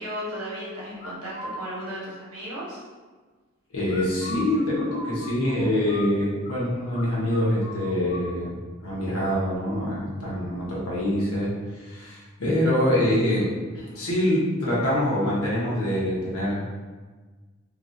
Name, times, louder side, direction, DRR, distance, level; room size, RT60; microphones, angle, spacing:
voice 1, 0.0-2.8, equal, 85° right, -6 dB, 1.1 m, -35 dB
sound 1, 1.0-1.6 3.9-6.6 6.9-7.1 7.3-8.3, left 1 dB, 25° left, 0.8 m, -38 dB
voice 2, 3.7-13.5 13.7-16.7, left 1 dB, 80° left, -6 dB, 0.9 m, -25 dB
2.8 x 2.4 x 2.6 m, 1.4 s
head